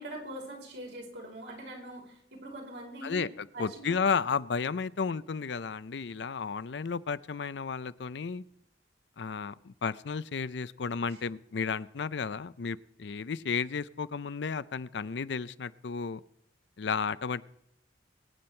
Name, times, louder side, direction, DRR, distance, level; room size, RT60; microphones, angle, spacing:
voice 1, 0.0-3.2 3.5-4.1, right 1 dB, 65° right, 0 dB, 4.9 m, -43 dB
voice 2, 3.0-8.4 9.2-16.2 16.8-17.4, left 5 dB, 65° left, 17 dB, 0.5 m, -33 dB
23.5 x 9.6 x 4.4 m, 0.78 s
head